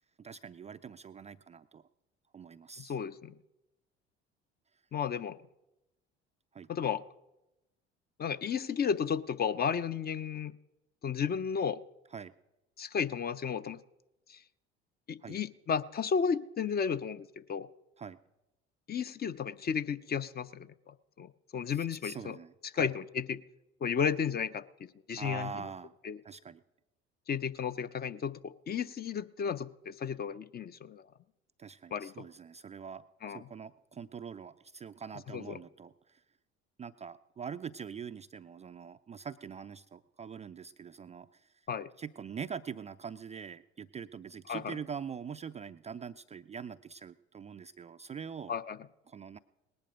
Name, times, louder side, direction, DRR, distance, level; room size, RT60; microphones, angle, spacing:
voice 1, 0.2-1.9 2.3-3.0 6.5-6.7 12.1-12.3 15.2-15.4 18.0-18.2 21.7-22.9 25.2-25.9 26.2-26.6 31.6-36.2 36.8-41.5 42.0-48.5 49.1-49.4, right 6 dB, 20° right, 11 dB, 0.4 m, -44 dB
voice 2, 2.8-3.3 4.9-5.4 6.7-7.0 8.2-10.5 11.0-11.8 12.8-13.8 14.3-14.4 15.1-17.7 18.9-22.4 22.7-23.4 23.8-25.5 26.0-26.2 27.3-31.0 31.9-32.1 33.2-33.4 35.3-35.6 41.7-41.9 44.5-44.8 48.5-48.8, left 7 dB, 30° left, 13 dB, 0.6 m, -33 dB
19.0 x 10.5 x 5.1 m, 0.95 s
hypercardioid pair, 65°, 33 cm